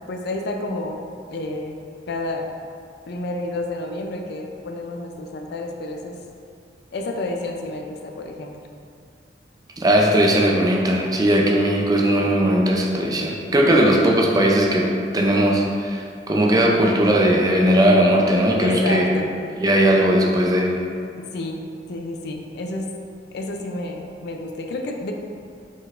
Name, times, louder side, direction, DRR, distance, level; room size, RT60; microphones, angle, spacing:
voice 1, 0.1-1.0 1.3-1.8 2.1-2.5 3.1-6.2 6.9-8.6 11.4-11.6 18.6-19.3 21.3-21.6 21.9-22.9 23.3-25.1, left 2 dB, 65° left, 3 dB, 0.4 m, -30 dB
voice 2, 9.8-14.9 15.1-19.1 19.6-20.7, right 1 dB, 20° right, -1 dB, 0.4 m, -18 dB
5.2 x 3.9 x 2.5 m, 2.3 s
head